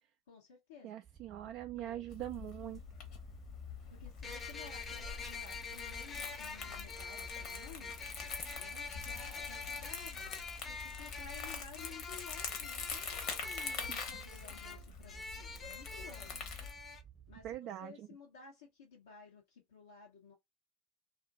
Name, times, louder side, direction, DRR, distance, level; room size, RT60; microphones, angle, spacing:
voice 1, 0.3-0.9 1.4-2.0 3.9-8.0 8.6-10.3 10.7-16.5 17.3-20.3, left 6 dB, 80° left, 0.8 m, -55 dB
voice 2, 0.8-2.8 13.9-14.0 17.4-17.9, right 13 dB, 55° right, 0.3 m, -42 dB
Wind / Boat Water vehicle, 1.0-17.6, right 9 dB, 25° right, 0.8 m, -57 dB
Crumpling crinkling, 2.1-16.7, left 6 dB, 55° left, 1.0 m, -45 dB
sound 1, 4.2-17.0, left 4 dB, 30° left, 0.6 m, -45 dB
2.5 x 2.5 x 2.3 m
hypercardioid pair, 80°, 0 cm